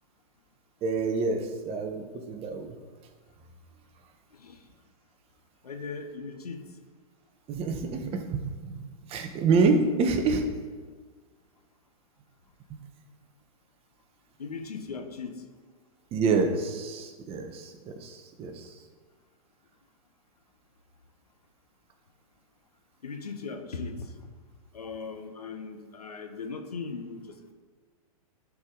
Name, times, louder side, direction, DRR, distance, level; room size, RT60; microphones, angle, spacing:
voice 1, 0.8-2.7 7.5-10.6 12.7-12.8 16.1-18.8, right 4 dB, 30° right, 5 dB, 1.1 m, -27 dB
voice 2, 4.3-4.6 5.6-6.6 14.4-15.4 23.0-24.2 24.7-27.5, left 4 dB, 85° left, 6 dB, 1.1 m, -38 dB
11.5 x 4.8 x 3.9 m, 1.5 s
hypercardioid pair, 110°, 19 cm